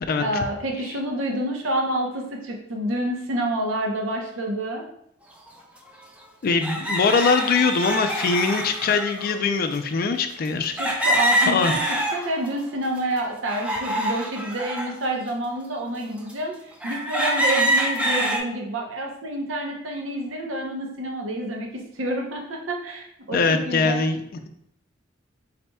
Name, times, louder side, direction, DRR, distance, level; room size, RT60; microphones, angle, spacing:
voice 1, 0.2-4.8 10.7-11.6 11.9-24.0, right 1 dB, 85° right, 1 dB, 0.7 m, -28 dB
sound 1, 5.5-5.6 6.6-9.4 10.8-12.5 13.0-14.9 15.6-15.7 16.3-16.4 16.8-18.4, equal, 5° right, 0.5 m, -25 dB
voice 2, 6.4-10.7 11.5-11.7 23.3-24.5, left 4 dB, 50° left, 7 dB, 0.4 m, -22 dB
4.2 x 4.1 x 2.2 m, 0.74 s
head